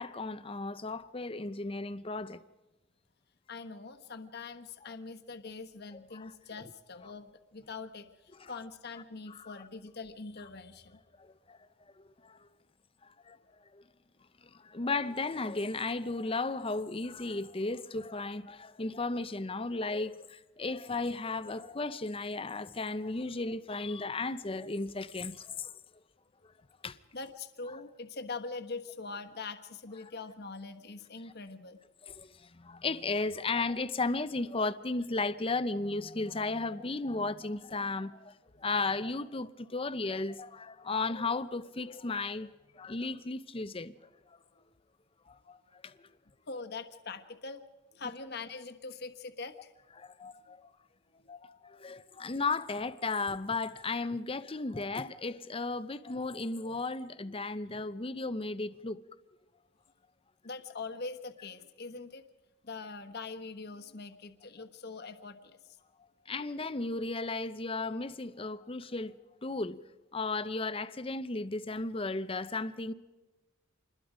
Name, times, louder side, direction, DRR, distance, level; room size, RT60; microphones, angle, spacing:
voice 1, 0.0-2.4 6.1-6.3 8.4-8.5 9.3-9.5 11.2-11.6 12.2-12.4 13.0-13.4 13.7-13.8 14.5-25.7 26.8-27.0 32.0-42.5 42.7-43.9 44.3-44.4 45.3-46.1 50.0-50.7 51.3-59.0 66.3-69.2 69.4-69.8 70.1-72.9, left 3 dB, 25° left, 0.7 m, -35 dB
voice 2, 3.5-11.0 27.1-31.8 44.6-44.7 46.5-47.6 47.9-49.7 50.2-50.3 51.2-51.3 52.1-52.2 60.4-62.3 62.6-65.6, left 4 dB, 50° left, 1.3 m, -43 dB
27.0 x 21.0 x 5.1 m
head